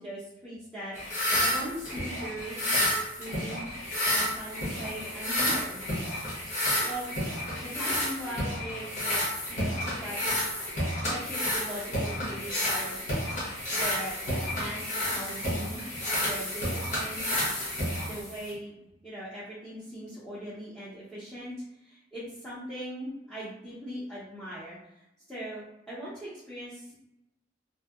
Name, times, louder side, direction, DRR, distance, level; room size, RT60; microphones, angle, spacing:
voice 1, 0.0-5.8 6.2-6.4 6.8-7.1 7.6-10.3 11.0-13.3 13.7-15.9 16.2-17.2 18.0-18.7 19.0-21.5 21.8-27.0, equal, 5° left, -12 dB, 0.6 m, -40 dB
sound 1, 0.9-18.5, left 1 dB, 40° left, 0.9 m, -30 dB
2.6 x 2.1 x 2.3 m, 0.88 s
head